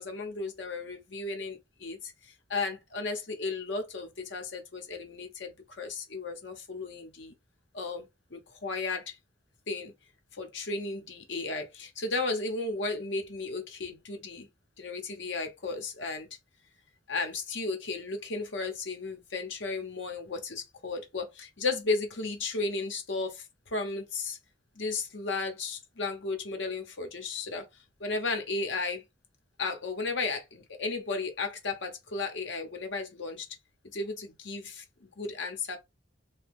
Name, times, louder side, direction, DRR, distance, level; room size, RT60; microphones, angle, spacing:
voice 1, 0.0-7.3 7.7-9.1 9.7-9.9 10.3-14.5 14.8-16.3 17.1-23.4 23.7-24.4 24.8-27.7 28.0-29.0 29.6-33.5 33.9-35.8, left 3 dB, 70° left, 0.9 m, -34 dB
3.0 x 2.2 x 3.5 m
head